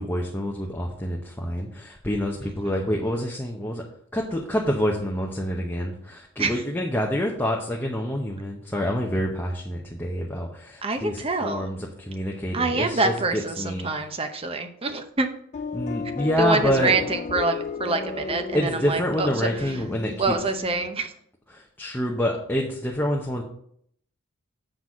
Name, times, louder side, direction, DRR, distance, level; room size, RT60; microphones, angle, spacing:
voice 1, 0.0-3.8 4.1-13.1 13.6-13.9 15.7-16.9 18.5-20.1 21.5-23.4, equal, 10° left, -1 dB, 0.7 m, -27 dB
voice 2, 10.8-11.7 12.5-15.3 16.4-19.8 20.2-21.1, right 3 dB, 25° right, 7 dB, 0.7 m, -26 dB
sound 1, 15.5-20.9, left 5 dB, 35° left, 0.3 m, -34 dB
7.6 x 4.0 x 6.0 m, 0.67 s
head